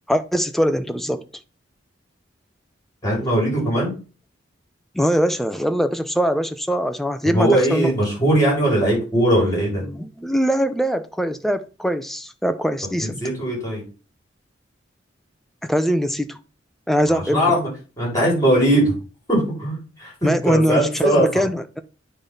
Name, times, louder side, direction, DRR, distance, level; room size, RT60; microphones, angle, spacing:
voice 1, 0.1-1.2 4.9-7.9 9.9-13.2 15.7-16.4 16.9-17.5 20.2-21.8, equal, ahead, 0.5 m, -22 dB
voice 2, 3.0-3.9 7.3-9.8 13.0-13.8 17.0-17.7 18.0-18.9 19.3-21.5, right 1 dB, 20° left, 4.2 m, -20 dB
9.0 x 3.4 x 5.5 m
head